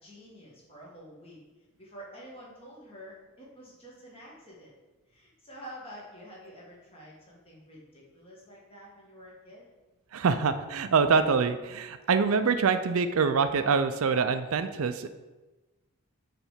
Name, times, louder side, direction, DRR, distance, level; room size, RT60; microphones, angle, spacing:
voice 1, 0.0-1.4 1.8-4.7 5.1-9.6, equal, 25° left, -4 dB, 1.7 m, -48 dB
voice 2, 10.1-15.1, right 5 dB, 70° right, 10 dB, 0.5 m, -25 dB
7.1 x 3.3 x 5.6 m, 1.2 s
head